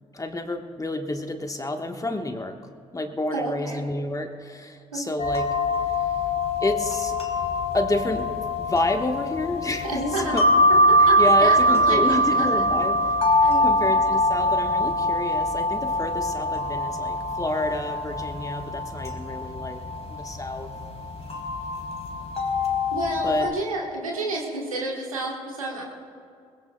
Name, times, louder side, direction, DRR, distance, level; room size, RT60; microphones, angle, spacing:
voice 1, 0.1-5.5 6.0-6.1 6.6-7.2 7.7-8.3 8.6-10.5 11.2-13.0 13.3-19.8 20.1-20.7 23.2-23.5, left 2 dB, 20° left, 5 dB, 1.3 m, -29 dB
voice 2, 3.3-3.9 4.9-5.0 9.8-10.4 10.9-12.8 13.4-13.7 22.9-25.8, right 2 dB, 90° right, -1 dB, 1.5 m, -30 dB
sound 1, 5.2-23.5, left 1 dB, 40° left, 2.4 m, -23 dB
22.0 x 20.5 x 2.3 m, 2.3 s
figure-of-eight pair, 45°, 17 cm